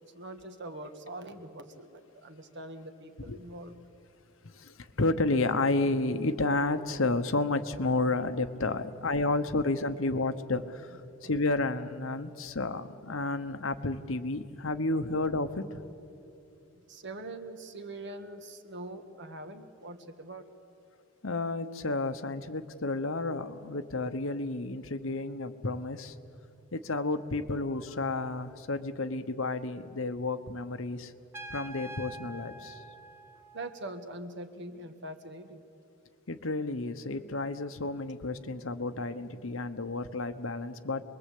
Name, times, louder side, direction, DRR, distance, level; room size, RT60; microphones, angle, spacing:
voice 1, 0.1-3.7 11.2-11.3 12.2-12.3 16.7-20.5 33.5-35.6, right 2 dB, 55° right, 7 dB, 1.7 m, -43 dB
voice 2, 4.4-15.9 21.2-26.2 26.7-31.1 31.5-32.8 36.3-41.0, left 2 dB, 65° left, 10 dB, 1.1 m, -31 dB
Trumpet, 31.3-34.0, right 2 dB, 10° right, 1.3 m, -45 dB
26.5 x 22.0 x 8.5 m, 2.6 s
head